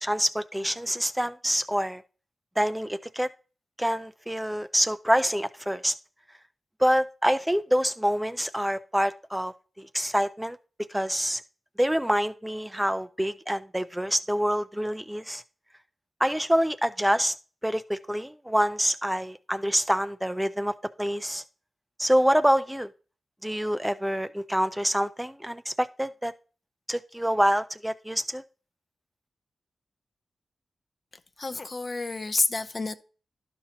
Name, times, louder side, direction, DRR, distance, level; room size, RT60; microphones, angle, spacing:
voice 1, 0.0-2.0 2.6-3.3 3.8-5.9 6.8-10.6 10.9-11.4 11.8-15.4 16.2-17.3 17.6-21.4 22.0-22.9 23.4-26.3 26.9-28.4, equal, 5° right, 0.3 m, -26 dB
voice 2, 31.4-32.9, left 3 dB, 35° left, 0.6 m, -29 dB
12.0 x 5.5 x 2.9 m
wide cardioid pair, 120°, 0 cm